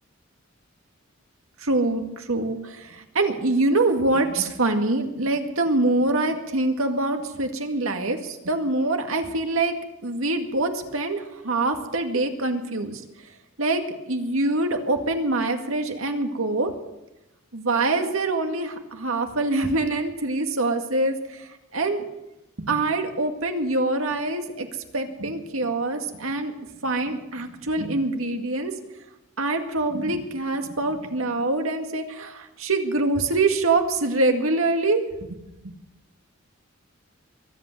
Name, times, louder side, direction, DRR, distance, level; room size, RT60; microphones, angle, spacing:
voice 1, 1.6-9.7 10.0-13.0 13.6-16.7 17.5-22.0 22.6-24.7 24.9-26.5 26.8-28.7 29.4-35.0 35.3-35.7, right 2 dB, 90° right, 5 dB, 2.0 m, -25 dB
22.5 x 8.4 x 7.7 m, 0.94 s
head